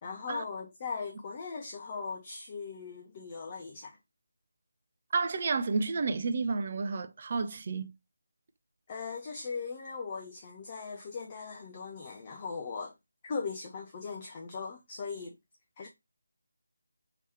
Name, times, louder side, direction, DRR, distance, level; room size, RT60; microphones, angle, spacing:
voice 1, 0.0-4.0 8.9-12.9 13.2-15.3 15.8-15.9, left 5 dB, 30° left, 0.5 m, -39 dB
voice 2, 5.1-7.9, right 4 dB, 40° right, 0.4 m, -31 dB
3.0 x 2.9 x 3.2 m
figure-of-eight pair, 160°, 0 cm